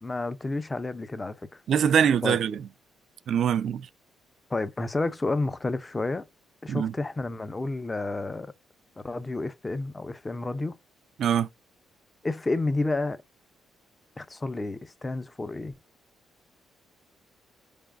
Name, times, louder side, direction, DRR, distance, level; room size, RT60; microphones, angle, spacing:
voice 1, 0.0-1.6 2.2-2.4 4.5-6.3 6.6-8.5 9.0-10.8 12.2-13.2 14.2-15.7, left 2 dB, 20° left, 0.5 m, -30 dB
voice 2, 1.7-2.6 3.3-3.9 6.7-6.9 11.2-11.5, right 8 dB, 65° right, 0.3 m, -23 dB
3.9 x 3.5 x 2.4 m
cardioid pair, 105°, 0 cm